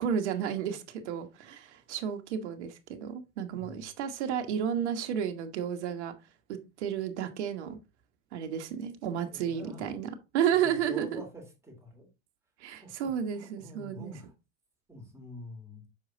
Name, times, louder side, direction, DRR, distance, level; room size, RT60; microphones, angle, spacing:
voice 1, 0.0-6.1 6.5-7.8 8.3-11.2 12.6-14.1, right 8 dB, 70° right, 1.4 m, -32 dB
voice 2, 3.5-3.8 9.3-9.9 10.6-12.1 12.7-14.3 14.9-15.8, equal, 5° right, 3.3 m, -46 dB
6.4 x 4.9 x 3.9 m
hypercardioid pair, 110°, 36 cm